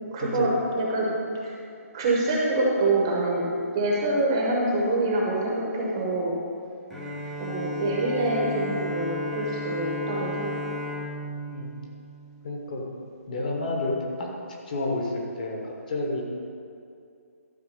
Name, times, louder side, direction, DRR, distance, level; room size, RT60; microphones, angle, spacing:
voice 1, 0.1-0.5 0.8-1.1 1.9-3.4 3.7-6.4 7.4-10.5, right 2 dB, 15° right, -3 dB, 0.9 m, -25 dB
Bowed string instrument, 6.9-12.8, left 1 dB, ahead, 0.5 m, -34 dB
voice 2, 12.4-12.8 13.3-14.3 14.7-16.2, left 2 dB, 30° left, 0 dB, 1.2 m, -30 dB
12.0 x 4.7 x 6.6 m, 2.4 s
hypercardioid pair, 180°, 8 cm